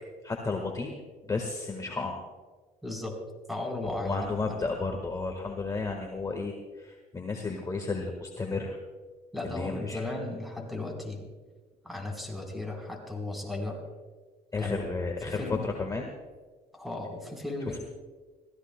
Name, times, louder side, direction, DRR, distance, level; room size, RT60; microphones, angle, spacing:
voice 1, 0.2-0.9 1.3-2.2 3.8-8.8 9.4-10.0 14.5-16.1 17.7-17.9, left 3 dB, 20° left, 2 dB, 1.5 m, -33 dB
voice 2, 2.8-3.2 3.5-4.3 9.3-11.3 11.8-13.8 14.6-14.8 15.2-15.7 16.7-17.9, left 2 dB, ahead, 1 dB, 4.0 m, -35 dB
26.5 x 16.0 x 2.2 m, 1.4 s
cardioid pair, 110°, 17 cm